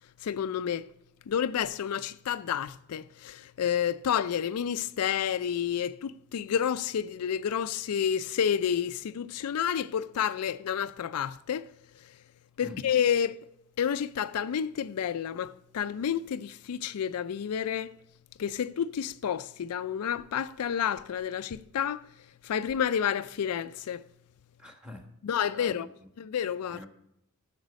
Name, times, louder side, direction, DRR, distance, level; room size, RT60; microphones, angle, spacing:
voice 1, 0.2-0.9 1.3-11.7 12.6-13.4 13.8-17.9 18.4-22.1 22.4-24.0 25.2-25.9 26.2-26.8, left 8 dB, 85° left, 0.4 m, -30 dB
voice 2, 24.6-25.1 25.5-25.9 26.7-26.9, left 1 dB, 5° right, 1.4 m, -45 dB
10.5 x 7.1 x 5.1 m
head